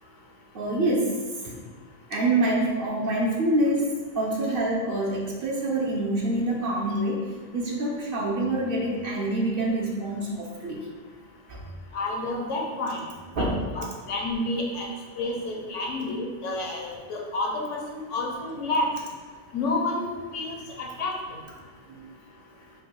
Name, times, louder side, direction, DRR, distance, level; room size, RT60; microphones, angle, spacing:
voice 1, 0.5-1.1 1.4-1.6 2.1-3.9 4.1-7.2 7.5-10.9 11.5-11.7 13.4-13.6 21.9-22.0, right 1 dB, 55° right, -2 dB, 0.8 m, -26 dB
voice 2, 11.9-13.0 13.4-13.5 13.8-14.9 15.2-17.8 18.1-18.9 19.5-21.1, left 2 dB, 75° left, 0 dB, 1.1 m, -29 dB
5.0 x 2.3 x 4.6 m, 1.5 s
omnidirectional pair, 1.3 m